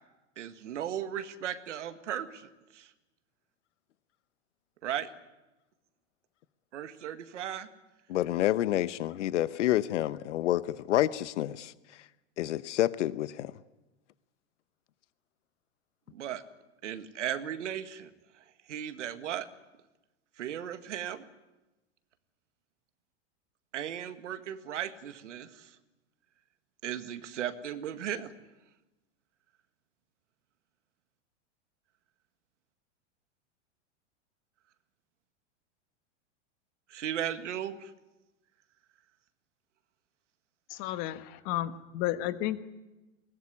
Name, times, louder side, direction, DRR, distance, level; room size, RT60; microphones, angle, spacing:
voice 1, 0.4-2.9 4.8-5.1 6.7-7.7 16.1-16.4 16.8-18.1 18.7-19.5 20.4-21.2 23.7-25.7 26.8-28.3 36.9-37.9, right 10 dB, 85° right, 1.9 m, -36 dB
voice 2, 8.1-12.1 12.4-13.5, left 13 dB, 80° left, 0.9 m, -29 dB
voice 3, 40.7-42.6, left 14 dB, 45° left, 1.5 m, -32 dB
22.0 x 19.0 x 9.8 m
hypercardioid pair, 125°, 36 cm